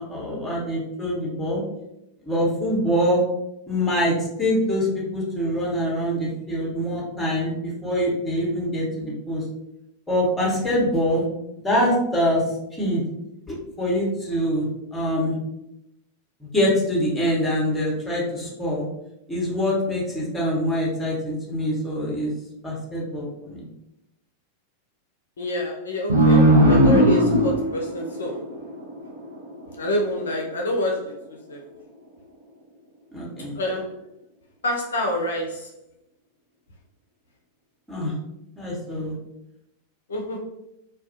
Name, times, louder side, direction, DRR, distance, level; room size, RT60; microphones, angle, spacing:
voice 1, 0.1-1.6 2.2-3.2 3.7-9.4 10.1-11.3 11.6-12.4 12.8-13.0 13.5-15.4 16.4-18.8 19.3-22.3 22.6-23.7 33.1-33.6 37.9-38.1 38.6-39.1, equal, 5° left, -4 dB, 0.9 m, -24 dB
voice 2, 25.4-28.4 29.8-31.6 33.5-34.0 34.6-35.7 40.1-40.4, left 1 dB, 65° left, 0 dB, 0.4 m, -27 dB
sound 1, 26.1-29.3, right 1 dB, 80° right, 0.6 m, -18 dB
2.3 x 2.1 x 2.7 m, 0.85 s
figure-of-eight pair, 90°, 0 cm